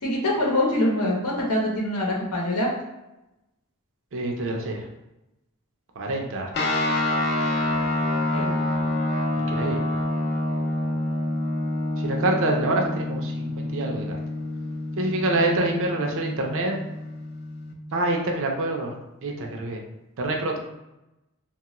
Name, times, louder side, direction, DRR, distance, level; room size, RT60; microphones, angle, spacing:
voice 1, 0.0-2.7 8.3-8.6, left 1 dB, 90° left, -2 dB, 0.8 m, -24 dB
voice 2, 4.1-4.8 6.0-6.5 9.3-9.8 12.0-14.2 15.0-16.8 17.9-18.9 19.2-19.8 20.2-20.6, right 2 dB, 60° right, 1 dB, 0.5 m, -26 dB
sound 1, 6.5-17.7, left 1 dB, 50° left, 0.4 m, -27 dB
2.9 x 2.3 x 2.9 m, 0.95 s
head